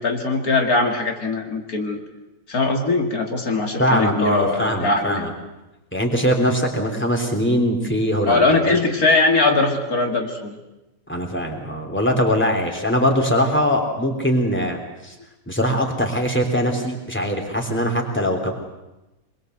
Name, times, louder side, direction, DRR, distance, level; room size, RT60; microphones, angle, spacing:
voice 1, 0.0-2.0 2.5-5.3 8.3-10.5, left 3 dB, 85° left, 2 dB, 3.0 m, -21 dB
voice 2, 3.8-5.3 5.9-8.8 11.1-15.2 15.5-18.5, equal, 5° left, 2 dB, 3.5 m, -21 dB
24.5 x 22.0 x 8.0 m, 1.0 s
omnidirectional pair, 1.5 m